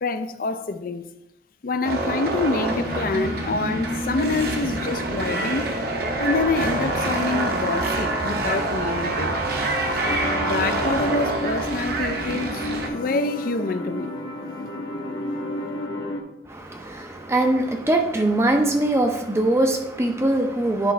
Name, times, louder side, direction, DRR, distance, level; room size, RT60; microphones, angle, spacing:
voice 1, 0.0-1.0 1.6-5.7 6.2-9.3 10.4-14.1, left 3 dB, 50° left, 0.4 m, -26 dB
sound 1, 1.8-12.9, right 2 dB, 60° right, 0.9 m, -26 dB
sound 2, 10.1-16.2, left 1 dB, 75° left, 1.0 m, -32 dB
voice 2, 16.5-20.9, right 1 dB, 15° right, 0.5 m, -22 dB
9.9 x 3.7 x 3.2 m
head